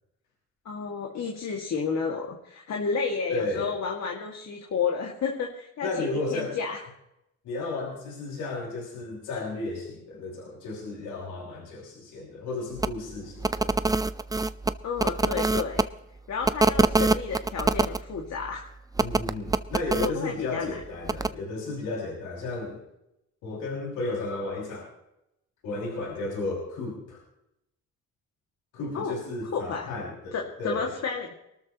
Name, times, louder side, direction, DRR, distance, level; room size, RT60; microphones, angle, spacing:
voice 1, 0.7-6.8 14.8-15.9 16.3-18.7 20.0-20.8 28.9-29.2 29.5-29.9 30.3-31.3, left 5 dB, 60° left, 0 dB, 2.2 m, -31 dB
voice 2, 3.3-3.7 5.8-6.6 7.4-13.8 19.0-22.8 23.4-24.9 25.6-27.2 28.7-30.9, left 2 dB, 85° left, -3 dB, 6.0 m, -33 dB
sound 1, 12.8-12.9 13.4-15.8 16.4-18.0 19.0-20.1 21.1-21.3, right 3 dB, 10° right, 0.5 m, -24 dB
23.0 x 13.0 x 3.0 m, 0.85 s
cardioid pair, 90°, 30 cm